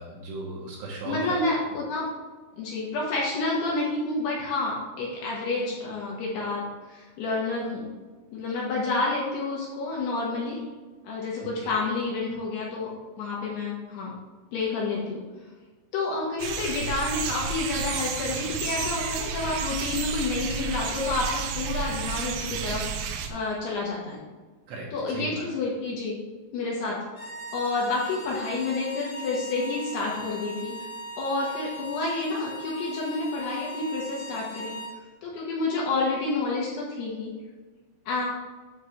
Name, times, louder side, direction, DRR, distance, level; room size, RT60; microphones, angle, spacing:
voice 1, 0.0-1.5 11.6-11.8 24.7-25.4, right 3 dB, 70° right, -2 dB, 2.9 m, -37 dB
voice 2, 1.0-2.1 2.6-7.9 8.3-10.6 11.0-12.9 13.2-14.1 14.5-15.2 15.9-24.2 24.9-26.2 26.5-27.0 27.5-30.7 31.2-34.8 35.2-37.3 38.1-38.3, left 3 dB, 70° left, -4 dB, 2.8 m, -29 dB
sound 1, 16.4-23.3, right 6 dB, 90° right, 3.4 m, -31 dB
sound 2, 27.1-35.0, right 1 dB, 90° left, 1.6 m, -39 dB
10.0 x 6.6 x 3.3 m, 1.3 s
omnidirectional pair, 6.0 m